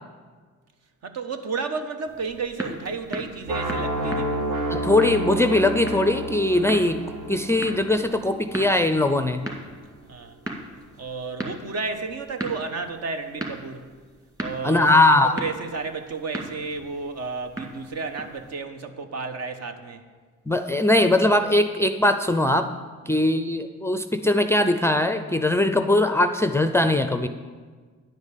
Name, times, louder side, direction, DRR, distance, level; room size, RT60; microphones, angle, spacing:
voice 1, 1.0-4.5 10.1-10.4 11.0-13.8 14.4-20.0 23.0-23.2, right 4 dB, 60° right, 8 dB, 1.0 m, -32 dB
sound 1, 2.1-18.5, right 1 dB, 10° right, 2.1 m, -38 dB
sound 2, 3.5-9.4, right 1 dB, 75° right, 1.6 m, -30 dB
voice 2, 4.7-9.4 14.6-15.4 20.5-22.7 23.1-27.3, left 2 dB, 10° left, 8 dB, 0.4 m, -20 dB
10.5 x 5.3 x 8.3 m, 1.5 s
cardioid pair, 90°, 30 cm